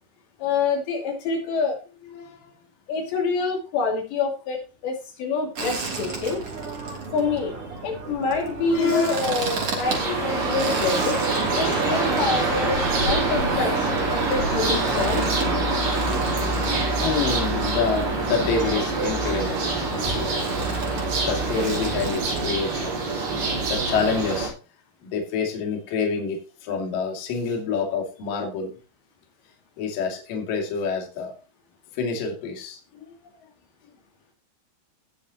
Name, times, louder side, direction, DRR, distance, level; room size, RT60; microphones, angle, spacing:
voice 1, 0.4-1.8 2.9-6.4 7.1-7.6 7.8-11.2 11.5-15.2, left 4 dB, 75° left, 1 dB, 4.7 m, -26 dB
voice 2, 2.1-2.5 8.7-9.3 15.1-15.3 16.5-16.6 17.0-20.5 21.2-24.5 25.0-28.7 29.8-31.3 31.9-33.1, left 5 dB, 55° left, 1 dB, 3.9 m, -28 dB
sound 1, 5.6-22.5, right 4 dB, 35° right, 3.3 m, -34 dB
sound 2, 9.8-24.5, right 3 dB, 70° right, 6.7 m, -25 dB
18.5 x 6.9 x 3.0 m, 0.34 s
omnidirectional pair, 5.1 m